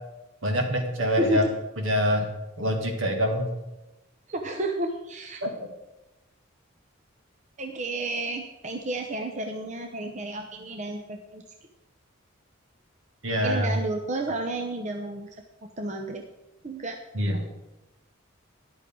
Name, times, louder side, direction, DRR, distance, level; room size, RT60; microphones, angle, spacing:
voice 1, 0.4-1.4 1.8-2.3 2.6-3.5 5.4-5.7 13.2-13.8 17.1-17.4, equal, 70° right, 2 dB, 2.3 m, -25 dB
voice 2, 1.2-1.5 4.3-5.4 7.6-11.4 13.4-15.3 15.6-16.2 16.6-17.0 17.3-17.4, right 1 dB, 35° right, 4 dB, 0.8 m, -31 dB
13.5 x 11.0 x 3.8 m, 1.0 s
head